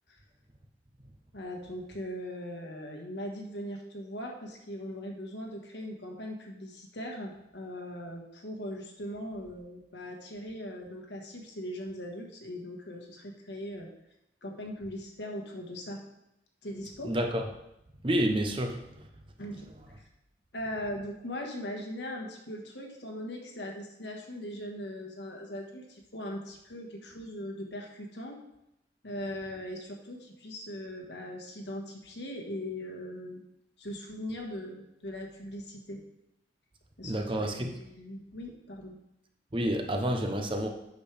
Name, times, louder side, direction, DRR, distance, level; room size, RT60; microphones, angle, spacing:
voice 1, 1.3-13.9 14.4-16.0 16.6-17.1 19.4-19.9 20.5-28.4 29.0-33.4 33.8-36.0 37.0-39.0, left 1 dB, 80° left, 1 dB, 1.5 m, -40 dB
voice 2, 17.0-17.4 18.0-18.8 37.0-37.7 39.5-40.7, right 1 dB, 30° right, 4 dB, 0.8 m, -29 dB
8.0 x 6.5 x 3.4 m, 0.85 s
head